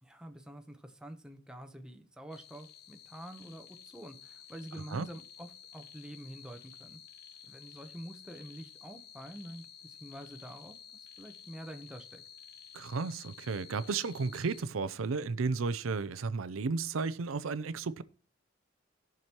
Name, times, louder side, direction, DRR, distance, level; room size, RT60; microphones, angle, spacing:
voice 1, 0.0-7.0 7.5-12.2, right 1 dB, 5° right, 0.9 m, -47 dB
sound 1, 2.3-14.6, left 8 dB, 55° left, 0.8 m, -53 dB
voice 2, 12.7-18.0, right 4 dB, 85° right, 0.5 m, -33 dB
17.5 x 6.0 x 3.0 m
head